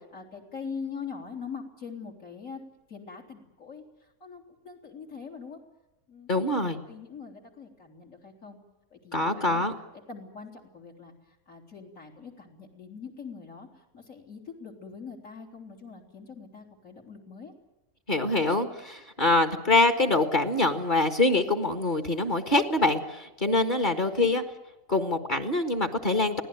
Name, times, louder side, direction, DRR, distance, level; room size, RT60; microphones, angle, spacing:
voice 1, 0.1-2.6 2.9-3.8 4.2-5.6 6.1-8.6 8.9-9.6 10.1-11.1 11.5-13.7 13.9-17.5 23.9-24.3, left 5 dB, 60° left, 1 dB, 3.9 m, -42 dB
voice 2, 6.3-6.8 9.1-9.7 18.1-24.4 24.9-26.4, left 2 dB, 35° left, 7 dB, 1.8 m, -24 dB
23.5 x 17.0 x 9.3 m, 0.99 s
omnidirectional pair, 1.5 m